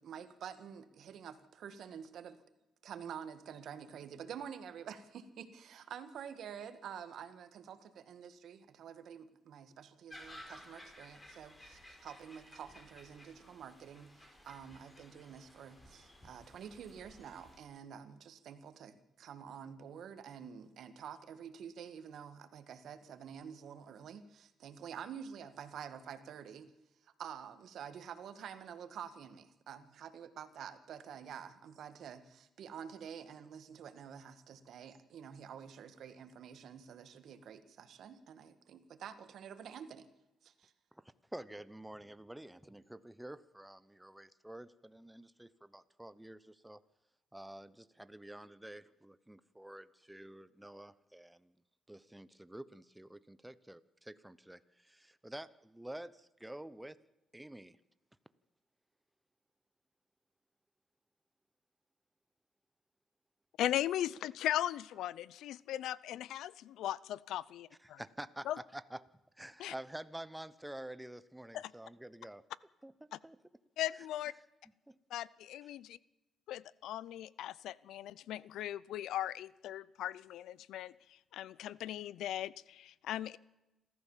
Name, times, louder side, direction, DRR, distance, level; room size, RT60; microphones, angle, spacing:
voice 1, 0.0-2.4 2.8-26.7 27.0-40.1 40.4-40.7, right 8 dB, 70° right, 10 dB, 1.9 m, -48 dB
sound 1, 10.1-17.6, left 1 dB, 15° left, 5.6 m, -56 dB
voice 2, 41.0-46.8 47.3-51.5 51.9-57.0 57.3-57.8 67.8-69.0 69.4-72.5 72.8-72.9 73.2-73.4 74.9-75.0, right 1 dB, 5° right, 15 dB, 0.9 m, -49 dB
voice 3, 63.6-68.0 68.5-68.6 69.6-69.7 71.5-71.7 73.1-73.2 73.8-74.3 75.1-76.0 76.5-83.4, left 12 dB, 85° left, 21 dB, 0.6 m, -38 dB
26.5 x 14.0 x 7.4 m, 0.99 s
cardioid pair, 90°, 0 cm